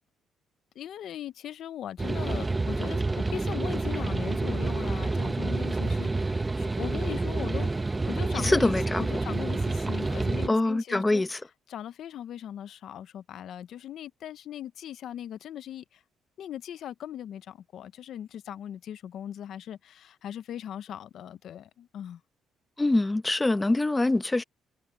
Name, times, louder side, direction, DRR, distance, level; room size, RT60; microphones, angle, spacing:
voice 1, 0.7-7.7 8.1-8.7 9.0-11.2 11.7-16.0 16.4-22.2, left 10 dB, 70° left, 0.8 m, -39 dB
sound 1, 2.0-10.5, right 3 dB, 20° right, 1.2 m, -28 dB
voice 2, 8.4-9.2 10.5-11.4 22.8-24.4, left 2 dB, 15° left, 1.0 m, -24 dB
cardioid pair, 95°, 0 cm